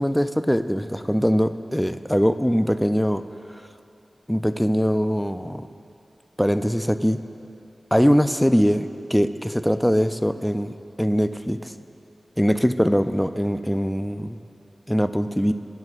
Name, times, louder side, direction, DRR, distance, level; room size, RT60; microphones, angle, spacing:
voice 1, 0.0-3.2 4.3-5.7 6.4-7.2 7.9-11.7 12.4-14.4 14.9-15.5, equal, 5° left, 10 dB, 0.4 m, -22 dB
22.5 x 7.9 x 2.5 m, 2.8 s
wide cardioid pair, 65°, 0 cm